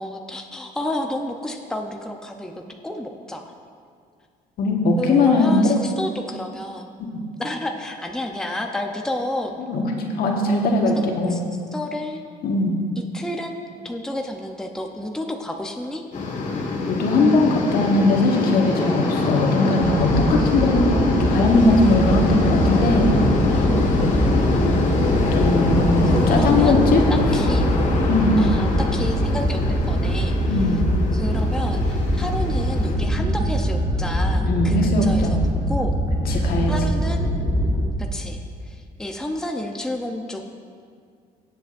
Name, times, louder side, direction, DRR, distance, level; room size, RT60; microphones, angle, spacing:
voice 1, 0.0-3.5 5.0-6.9 7.4-9.6 11.0-11.4 11.7-12.2 13.1-13.5 13.8-16.0 20.4-20.5 26.1-28.0 28.4-30.7 31.1-35.4 35.7-36.0 36.3-36.4 36.7-37.3 38.0-40.5, left 1 dB, 5° left, 2 dB, 0.7 m, -30 dB
voice 2, 4.6-5.8 7.1-7.2 9.7-11.4 12.4-12.8 16.9-23.2 25.3-27.0 28.1-28.4 30.5-30.8 33.2-33.3 34.4-35.4 36.3-36.7, left 2 dB, 65° left, 0 dB, 1.5 m, -20 dB
sound 1, 16.1-32.9, left 2 dB, 45° left, 1.7 m, -24 dB
sound 2, 19.8-37.9, equal, 25° right, 1.7 m, -23 dB
17.0 x 7.7 x 2.6 m, 2.2 s
cardioid pair, 100°, 16 cm